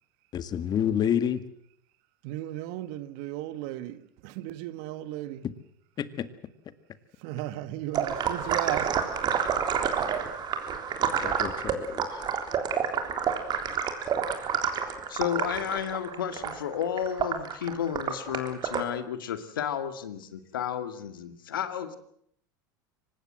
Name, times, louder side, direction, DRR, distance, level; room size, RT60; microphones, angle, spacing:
voice 1, 0.3-1.4 6.0-6.3 11.2-12.4, left 9 dB, 40° left, 2.0 m, -29 dB
voice 2, 2.2-5.4 7.2-9.0 9.8-10.1, right 14 dB, 65° right, 1.5 m, -35 dB
sound 1, 7.9-18.8, right 7 dB, 40° right, 3.5 m, -29 dB
voice 3, 15.1-22.0, left 9 dB, 85° left, 2.2 m, -32 dB
24.5 x 20.0 x 7.7 m
hypercardioid pair, 90°, 11 cm